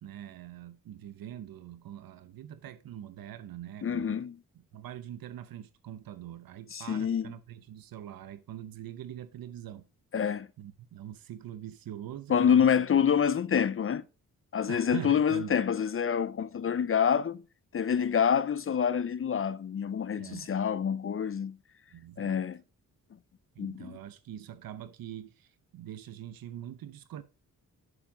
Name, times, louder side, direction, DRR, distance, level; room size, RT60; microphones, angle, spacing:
voice 1, 0.0-4.2 4.5-9.8 10.6-12.7 14.7-15.6 20.2-20.5 21.9-22.4 23.5-27.2, right 11 dB, 85° right, 0.7 m, -43 dB
voice 2, 3.8-4.4 6.7-7.3 10.1-10.5 12.3-14.0 14.5-17.4 17.7-21.6 22.2-22.6 23.6-24.0, left 7 dB, 40° left, 0.5 m, -27 dB
11.0 x 4.9 x 5.0 m
cardioid pair, 100°, 34 cm